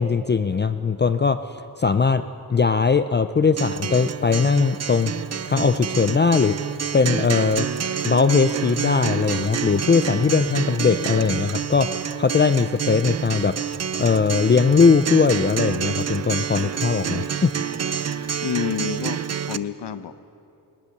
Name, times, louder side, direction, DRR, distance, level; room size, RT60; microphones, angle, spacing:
voice 1, 0.0-1.4 1.8-2.2 2.5-5.1 5.5-6.6 6.9-7.7 8.0-13.5 13.9-17.5, left 5 dB, 30° left, 11 dB, 0.4 m, -20 dB
Acoustic guitar, 3.6-19.6, right 8 dB, 40° right, 0.5 m, -28 dB
voice 2, 18.4-19.2 19.5-20.1, left 8 dB, 85° left, 12 dB, 1.0 m, -28 dB
20.5 x 20.5 x 6.6 m, 2.6 s
wide cardioid pair, 155°, 40 cm